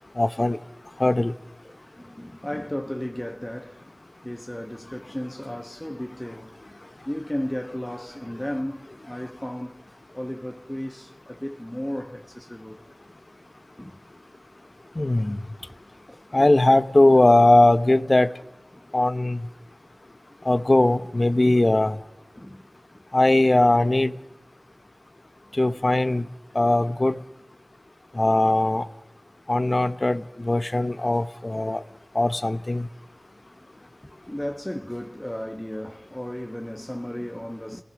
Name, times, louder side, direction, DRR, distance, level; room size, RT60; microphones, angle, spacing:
voice 1, 0.2-0.6 1.0-1.3 15.0-15.4 16.3-18.3 18.9-19.4 20.5-21.9 23.1-24.1 25.6-26.2 26.5-27.1 28.2-28.8 29.5-31.8 32.1-32.9, left 2 dB, 45° left, 0.7 m, -19 dB
voice 2, 1.6-3.8 4.2-6.6 7.0-12.8 13.8-14.0 15.6-15.7 16.1-16.2 18.7-18.9 22.4-22.6 33.6-37.8, left 1 dB, 15° left, 1.2 m, -34 dB
29.5 x 18.0 x 6.4 m
wide cardioid pair, 40°, 0 cm